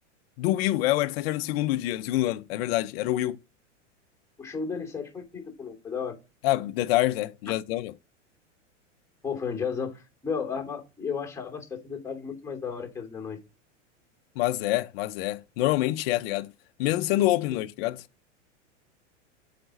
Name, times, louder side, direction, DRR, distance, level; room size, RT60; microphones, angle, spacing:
voice 1, 0.4-3.4 6.4-7.9 14.4-16.5 16.8-18.0, left 16 dB, 55° left, 0.7 m, -26 dB
voice 2, 4.4-6.1 9.2-13.4, left 6 dB, 10° left, 2.9 m, -33 dB
7.7 x 5.1 x 4.1 m
hypercardioid pair, 100°, 37 cm